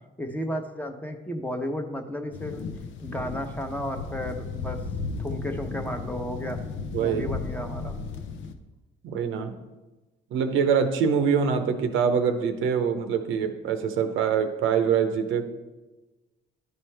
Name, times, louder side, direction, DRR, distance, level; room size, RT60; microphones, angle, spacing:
voice 1, 0.2-2.6 3.0-4.8 5.2-6.7 7.0-8.0, equal, 10° left, 5 dB, 0.8 m, -33 dB
sound 1, 2.3-8.5, left 4 dB, 75° left, 0.6 m, -35 dB
voice 2, 9.0-9.6 10.3-15.5, right 7 dB, 90° right, 7 dB, 0.7 m, -24 dB
10.5 x 4.5 x 3.3 m, 1.2 s
cardioid pair, 90°, 20 cm